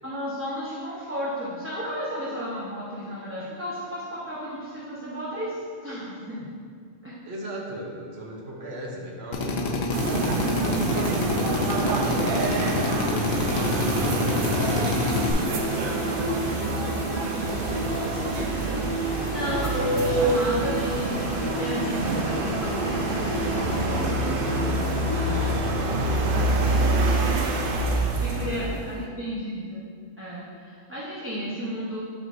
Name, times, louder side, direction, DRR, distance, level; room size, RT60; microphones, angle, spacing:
voice 1, 0.0-6.5 7.0-7.2 11.6-11.9 19.2-25.5 28.2-29.9 30.2-32.0, equal, 15° right, -8 dB, 0.8 m, -33 dB
voice 2, 7.3-10.9 11.8-16.8 17.2-18.9 25.1-29.1, right 1 dB, 90° right, -1 dB, 1.1 m, -38 dB
Drill, 9.3-15.3, left 3 dB, 90° left, 0.9 m, -27 dB
sound 1, 9.9-29.0, right 2 dB, 65° right, 0.7 m, -26 dB
sound 2, 14.4-26.3, equal, 35° left, 0.4 m, -34 dB
6.4 x 5.8 x 2.6 m, 2.1 s
omnidirectional pair, 1.0 m